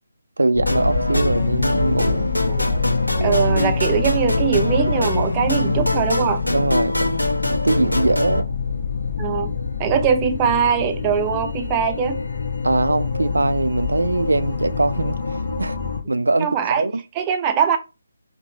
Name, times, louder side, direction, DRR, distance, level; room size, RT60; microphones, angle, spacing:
voice 1, 0.4-2.3 6.5-8.5 12.6-15.8 16.1-17.0, right 2 dB, 75° right, 0.3 m, -22 dB
sound 1, 0.5-16.0, left 4 dB, 55° left, 0.7 m, -25 dB
sound 2, 0.7-8.4, left 1 dB, 85° left, 0.9 m, -24 dB
voice 2, 3.2-6.4 9.2-12.2 16.4-16.9 17.1-17.8, right 7 dB, 20° right, 0.5 m, -21 dB
5.1 x 2.1 x 2.7 m
figure-of-eight pair, 150°, 0 cm